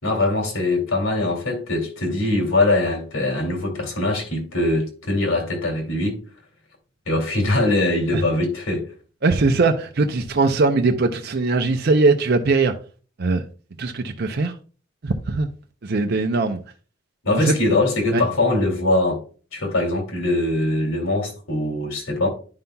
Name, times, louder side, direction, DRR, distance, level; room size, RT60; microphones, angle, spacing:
voice 1, 0.0-6.2 7.1-8.9 17.2-19.2 19.5-22.3, left 2 dB, 85° left, 2.7 m, -22 dB
voice 2, 9.2-12.7 13.2-13.4 13.8-14.5 15.0-15.5 15.8-16.6 17.3-17.6 18.1-18.2, right 3 dB, 50° right, 0.6 m, -20 dB
10.5 x 5.5 x 2.2 m
head